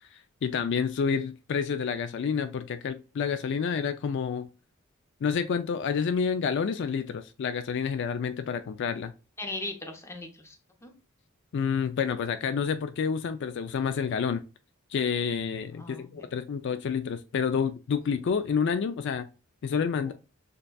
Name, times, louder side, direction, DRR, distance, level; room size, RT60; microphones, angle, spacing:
voice 1, 0.1-4.5 5.2-9.1 11.5-14.4 14.9-19.3 19.6-20.1, left 6 dB, 60° left, 0.3 m, -29 dB
voice 2, 9.4-10.6 10.8-11.0 15.8-16.3 20.0-20.1, left 2 dB, 15° left, 0.8 m, -38 dB
6.5 x 2.3 x 2.2 m
head